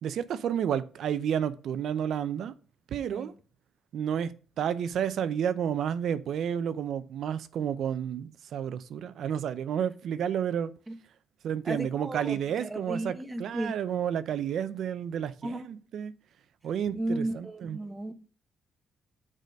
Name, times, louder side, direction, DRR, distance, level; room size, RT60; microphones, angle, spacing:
voice 1, 0.0-2.5 2.9-3.3 3.9-10.7 11.4-13.1 13.4-16.1 16.6-17.8, right 9 dB, 70° right, 0.6 m, -31 dB
voice 2, 11.6-13.8 15.4-15.7 16.9-18.1, right 1 dB, 15° right, 1.1 m, -34 dB
6.6 x 5.0 x 6.4 m
cardioid pair, 90°, 0 cm